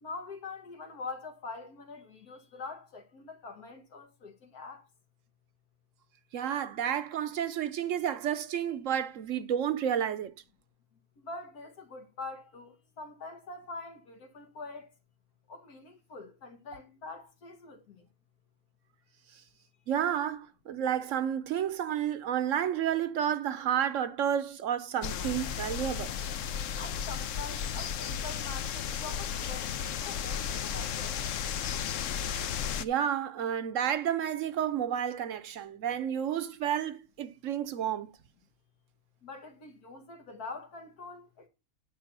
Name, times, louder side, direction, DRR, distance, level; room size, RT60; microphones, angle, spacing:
voice 1, 0.0-4.9 11.2-14.9 15.5-18.0 26.8-31.2 39.2-41.5, left 3 dB, 85° left, 2.0 m, -44 dB
voice 2, 6.3-10.3 19.9-26.1 32.8-38.1, right 9 dB, 65° right, 1.0 m, -31 dB
sound 1, 25.0-32.8, left 8 dB, 65° left, 1.0 m, -34 dB
9.3 x 4.9 x 6.0 m
omnidirectional pair, 1.5 m